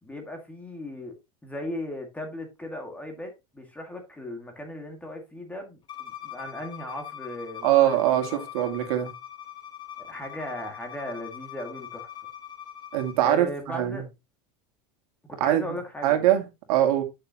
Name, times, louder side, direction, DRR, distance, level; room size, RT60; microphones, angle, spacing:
voice 1, 0.0-1.1 1.4-8.5 10.0-12.1 13.2-14.1 15.3-16.3, left 1 dB, 5° left, 1.9 m, -37 dB
Bowed string instrument, 5.9-13.2, left 11 dB, 25° left, 1.2 m, -42 dB
voice 2, 7.6-9.1 12.9-14.0 15.4-15.7 16.0-17.0, right 12 dB, 75° right, 2.3 m, -23 dB
9.4 x 6.6 x 2.9 m
supercardioid pair, 155°, 19 cm